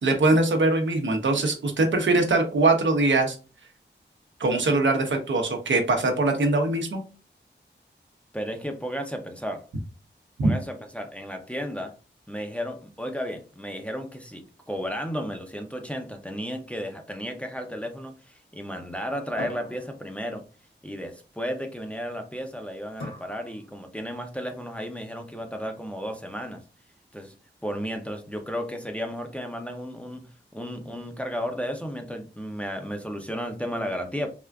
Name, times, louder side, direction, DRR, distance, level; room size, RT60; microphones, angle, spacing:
voice 1, 0.0-3.4 4.4-7.0 10.4-10.5, right 2 dB, 75° right, 0.7 m, -22 dB
voice 2, 8.3-9.7 10.4-11.9 12.3-20.4 20.8-26.6 27.1-27.3 27.6-34.3, equal, 5° left, 0.5 m, -33 dB
sound 1, 19.4-20.7 23.0-24.1, left 1 dB, 90° left, 1.6 m, -43 dB
3.5 x 2.4 x 2.3 m
wide cardioid pair, 70°, 19 cm